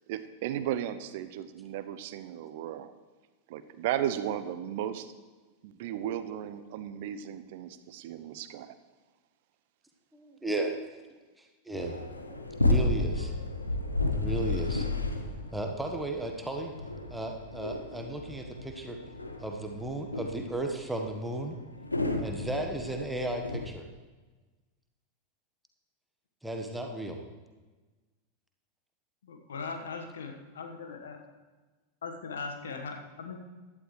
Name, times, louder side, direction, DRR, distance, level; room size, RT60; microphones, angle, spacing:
voice 1, 0.1-2.9 3.5-5.1 5.6-8.8, right 11 dB, 50° right, 12 dB, 0.7 m, -35 dB
voice 2, 10.1-10.8 11.1-12.0 12.6-13.3 14.1-14.9 15.5-16.7 17.1-19.0 19.4-21.6 22.2-23.8 26.4-27.2, right 1 dB, 5° right, 3 dB, 1.3 m, -35 dB
sound 1, 11.8-23.7, left 2 dB, 80° left, 1.0 m, -32 dB
voice 3, 29.2-31.2 32.0-33.4, left 4 dB, 65° left, 4 dB, 1.4 m, -39 dB
16.0 x 11.5 x 3.3 m, 1.3 s
figure-of-eight pair, 90°, 0 cm